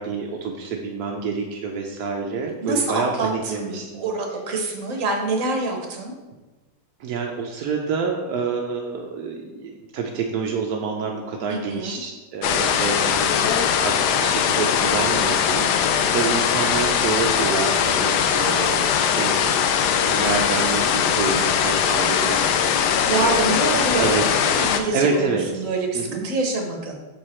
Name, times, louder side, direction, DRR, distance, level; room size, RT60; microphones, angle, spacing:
voice 1, 0.0-4.0 7.0-23.5 24.0-24.2 24.9-25.6 25.9-26.3, right 5 dB, 75° right, 1 dB, 0.9 m, -28 dB
voice 2, 2.6-6.1 11.5-12.0 18.4-18.8 22.8-27.0, right 3 dB, 50° right, 2 dB, 1.2 m, -26 dB
sound 1, 12.4-24.8, left 8 dB, 75° left, 0.9 m, -21 dB
6.0 x 4.7 x 4.3 m, 1.2 s
omnidirectional pair, 2.2 m